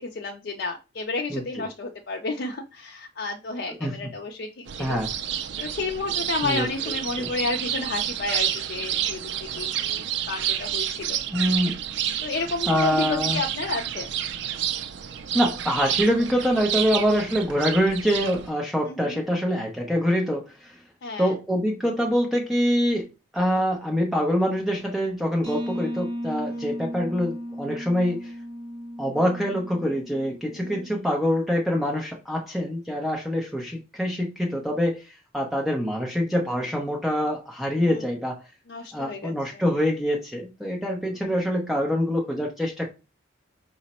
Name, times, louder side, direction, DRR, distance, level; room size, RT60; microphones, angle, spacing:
voice 1, 0.0-5.0 5.6-11.2 12.2-14.1 18.8-19.2 21.0-21.4 26.5-26.8 30.5-30.9 37.8-38.1 38.7-39.6, left 3 dB, 55° left, 2 dB, 0.4 m, -32 dB
voice 2, 1.3-1.6 3.8-3.9 4.8-5.1 6.4-6.7 7.2-7.3 11.3-11.8 12.7-13.4 15.3-20.8 21.2-28.3 29.0-38.4 38.9-42.8, equal, ahead, 0 dB, 0.6 m, -25 dB
sound 1, 4.7-18.5, right 10 dB, 60° right, 0.3 m, -30 dB
sound 2, 25.4-31.0, equal, 20° right, 1.7 m, -35 dB
4.9 x 2.1 x 4.1 m, 0.29 s
head